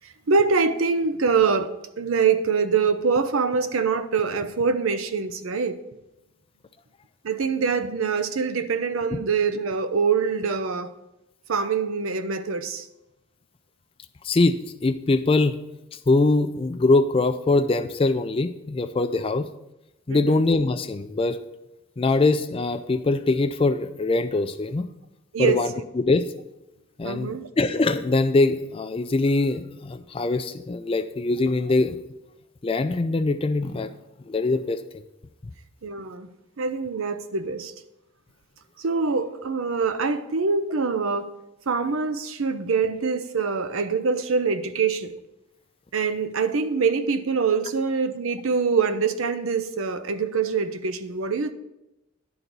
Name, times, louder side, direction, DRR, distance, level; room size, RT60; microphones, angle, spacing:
voice 1, 0.0-5.8 7.2-10.9 11.5-12.9 20.1-20.4 25.3-25.6 27.0-27.5 35.8-36.3 36.6-37.7 38.8-41.3 41.7-45.1 45.9-51.5, right 5 dB, 70° right, 0.6 m, -24 dB
voice 2, 14.2-15.6 16.1-19.5 20.1-21.4 22.0-24.9 25.4-26.2 27.0-32.0 32.6-33.9 34.2-34.8, left 3 dB, 25° left, 0.3 m, -23 dB
10.5 x 3.9 x 6.0 m
head